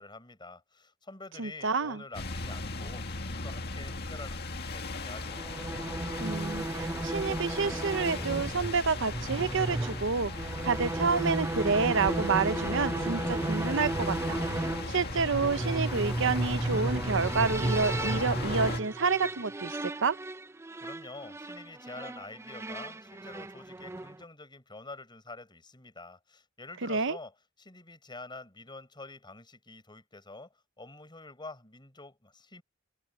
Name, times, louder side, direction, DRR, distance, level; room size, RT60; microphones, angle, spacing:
voice 1, 0.0-5.5 20.8-32.6, left 3 dB, 20° left, 5.7 m, -47 dB
voice 2, 1.4-2.0 6.2-14.4 14.9-20.2 26.8-27.2, right 4 dB, 65° right, 0.8 m, -29 dB
sound 1, 2.1-18.8, left 3 dB, 50° left, 2.0 m, -38 dB
sound 2, 5.2-24.2, right 2 dB, 15° right, 0.4 m, -34 dB
Bass guitar, 12.0-16.4, left 1 dB, 85° left, 7.6 m, -45 dB
head